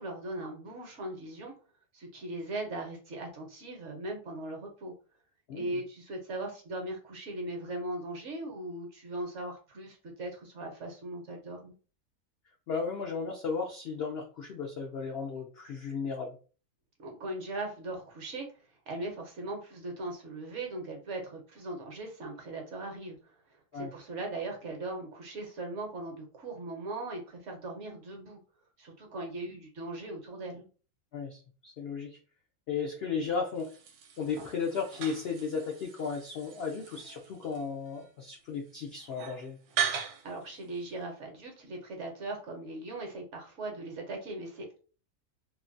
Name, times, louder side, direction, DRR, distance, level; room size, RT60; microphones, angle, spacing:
voice 1, 0.0-1.5 1.9-4.9 5.6-11.7 17.0-18.5 18.9-23.3 23.7-28.4 28.8-30.7 40.2-44.8, right 2 dB, 60° right, 2 dB, 1.0 m, -39 dB
voice 2, 5.5-5.8 12.7-16.4 23.7-23.9 31.1-32.2 32.7-33.8 34.2-39.6, left 5 dB, 80° left, 2 dB, 0.5 m, -35 dB
sound 1, 33.5-41.1, right 8 dB, 80° right, 1.1 m, -39 dB
3.2 x 2.1 x 2.5 m, 0.38 s
omnidirectional pair, 1.6 m